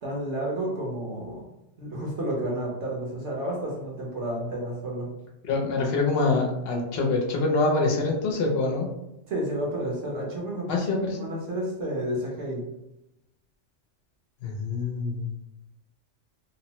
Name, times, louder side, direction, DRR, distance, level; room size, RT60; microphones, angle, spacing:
voice 1, 0.0-1.4 1.8-5.1 9.3-12.6, right 1 dB, 65° right, -2 dB, 1.1 m, -31 dB
voice 2, 5.4-8.9 10.7-11.3 14.4-15.3, left 3 dB, 60° left, 0 dB, 0.8 m, -25 dB
3.0 x 2.1 x 2.8 m, 0.90 s
omnidirectional pair, 1.3 m